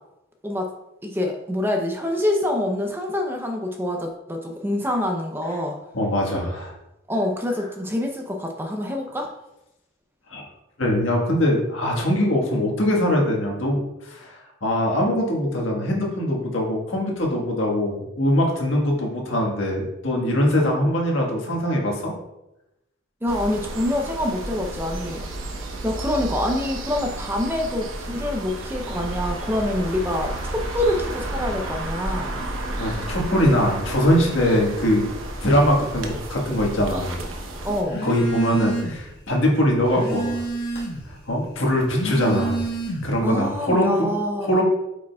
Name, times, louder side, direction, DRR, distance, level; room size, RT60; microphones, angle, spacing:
voice 1, 1.0-5.8 7.1-9.3 23.2-25.3 25.8-32.4 37.6-38.1 43.2-44.6, left 1 dB, 10° right, 3 dB, 0.6 m, -26 dB
voice 2, 5.9-6.7 10.3-10.4 10.8-22.1 32.8-35.1 35.4-37.1 38.0-40.4 41.1-42.6 43.0-44.1 44.4-44.6, equal, 85° left, -1 dB, 1.6 m, -22 dB
sound 1, 23.3-37.8, right 1 dB, 90° right, 0.9 m, -32 dB
Telephone, 37.8-39.1 39.5-41.1 41.8-43.3, right 2 dB, 50° left, 1.6 m, -28 dB
8.3 x 5.1 x 2.3 m, 0.91 s
head